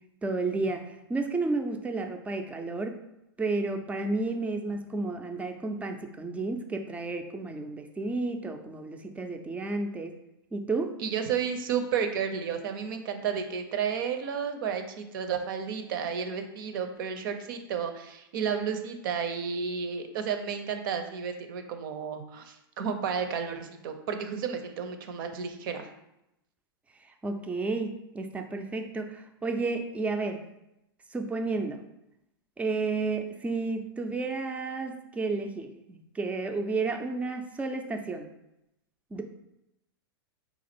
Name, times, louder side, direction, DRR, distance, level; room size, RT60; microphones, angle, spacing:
voice 1, 0.2-3.0 3.4-10.1 10.5-10.9 27.0-30.4 31.1-31.8 32.6-38.3 39.1-39.2, right 3 dB, 10° right, 5 dB, 0.4 m, -32 dB
voice 2, 11.0-25.9, right 7 dB, 60° right, 7 dB, 0.6 m, -32 dB
4.1 x 2.4 x 4.2 m, 0.87 s
hypercardioid pair, 110°, 13 cm